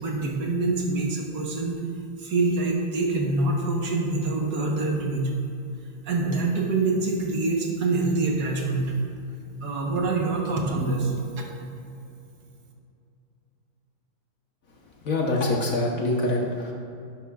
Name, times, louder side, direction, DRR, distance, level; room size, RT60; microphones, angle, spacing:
voice 1, 0.0-1.8 2.2-5.5 6.0-9.0 9.6-11.4, right 3 dB, 65° right, 0 dB, 1.6 m, -25 dB
voice 2, 15.0-16.7, left 2 dB, 55° left, -1 dB, 1.3 m, -25 dB
10.5 x 10.5 x 2.4 m, 2.6 s
omnidirectional pair, 2.0 m